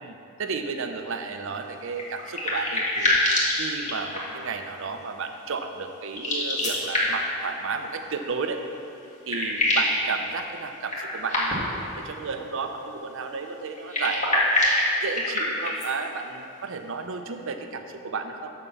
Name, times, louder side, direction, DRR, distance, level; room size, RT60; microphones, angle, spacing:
voice 1, 0.0-3.2 3.6-8.6 9.3-11.6 12.0-14.7 15.0-18.5, right 4 dB, 65° right, 6 dB, 0.6 m, -33 dB
sound 1, 1.9-4.5 6.1-7.4 8.7-8.8 9.0-10.0 10.8-11.8 13.7-15.9, left 1 dB, 35° left, 1.7 m, -25 dB
7.2 x 5.8 x 6.9 m, 2.8 s
head